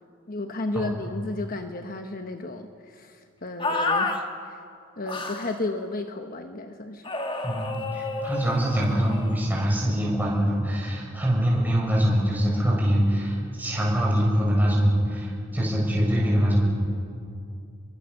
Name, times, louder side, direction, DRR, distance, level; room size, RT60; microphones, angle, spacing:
voice 1, 0.3-4.6 5.0-7.0, left 2 dB, 40° left, 6 dB, 1.1 m, -33 dB
sound 1, 3.6-4.2 5.1-5.6 7.0-9.4, left 3 dB, 25° left, 1.7 m, -30 dB
voice 2, 7.4-16.7, equal, 10° right, -4 dB, 6.9 m, -23 dB
28.0 x 23.5 x 6.7 m, 2.5 s
head